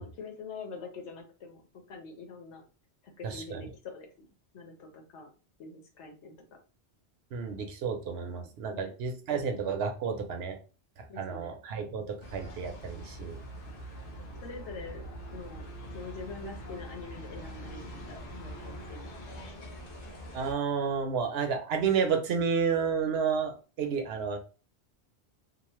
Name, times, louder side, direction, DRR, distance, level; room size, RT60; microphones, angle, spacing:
voice 1, 0.0-1.6 1.9-2.6 3.0-4.3 4.5-5.3 5.6-6.4 8.2-8.9 10.1-10.3 11.1-11.5 14.4-15.7 15.9-19.7, left 4 dB, 85° left, 3 dB, 1.1 m, -45 dB
voice 2, 3.2-3.6 7.3-10.6 11.2-13.4 20.3-24.4, right 6 dB, 70° right, 5 dB, 0.8 m, -31 dB
sound 1, 12.2-20.5, equal, 55° left, 0.9 m, -43 dB
3.0 x 2.0 x 3.0 m, 0.34 s
omnidirectional pair, 1.1 m